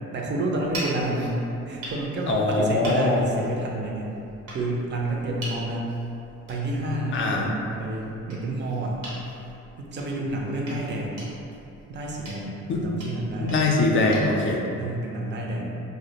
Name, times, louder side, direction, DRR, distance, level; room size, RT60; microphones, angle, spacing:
voice 1, 0.1-4.1 4.5-5.9 6.5-9.0 9.8-11.3 11.9-13.6 14.8-15.8, right 1 dB, 40° right, -1 dB, 0.4 m, -29 dB
sound 1, 0.5-14.4, right 1 dB, 90° right, 0.8 m, -42 dB
voice 2, 2.3-3.3 7.1-7.5 12.7-12.8 13.4-14.6, left 2 dB, 40° left, 0 dB, 0.4 m, -22 dB
2.2 x 2.1 x 2.7 m, 2.7 s
cardioid pair, 90°, 30 cm